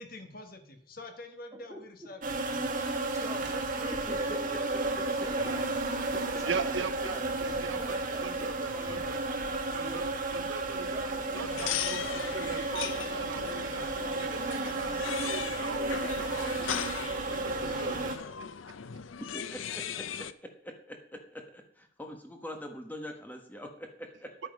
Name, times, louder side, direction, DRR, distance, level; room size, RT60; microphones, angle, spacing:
voice 1, 0.0-2.6, left 2 dB, 50° left, 6 dB, 1.6 m, -46 dB
sound 1, 2.2-18.2, right 2 dB, 45° right, 1.7 m, -33 dB
voice 2, 3.2-4.4 4.9-5.7 6.1-6.7 7.0-9.1 9.8-10.1 10.9-11.3, right 1 dB, 15° right, 0 dB, 2.7 m, -45 dB
voice 3, 4.1-4.6 4.9-5.3 19.2-19.8 20.6-24.3, equal, 10° left, 3 dB, 1.3 m, -43 dB
voice 4, 6.4-7.1 7.4-8.0 8.2-9.0 9.5-10.0 10.3-11.0 11.3-16.7 17.3-18.1, right 5 dB, 70° right, 12 dB, 0.7 m, -40 dB
sound 2, 11.3-20.3, left 8 dB, 85° left, 0.6 m, -38 dB
10.5 x 9.1 x 5.3 m, 0.64 s
head